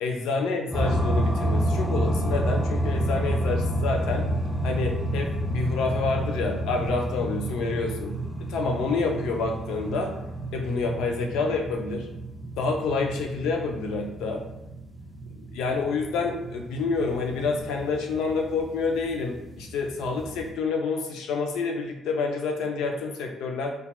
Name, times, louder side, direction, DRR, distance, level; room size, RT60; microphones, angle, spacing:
voice 1, 0.0-4.3 4.6-8.2 8.5-10.1 10.5-12.1 12.6-14.4 15.3-23.7, left 4 dB, 90° left, 2 dB, 0.4 m, -28 dB
sound 1, 0.7-20.5, right 1 dB, 5° left, 0.5 m, -30 dB
2.8 x 2.3 x 2.2 m, 0.96 s
cardioid pair, 90°, 0 cm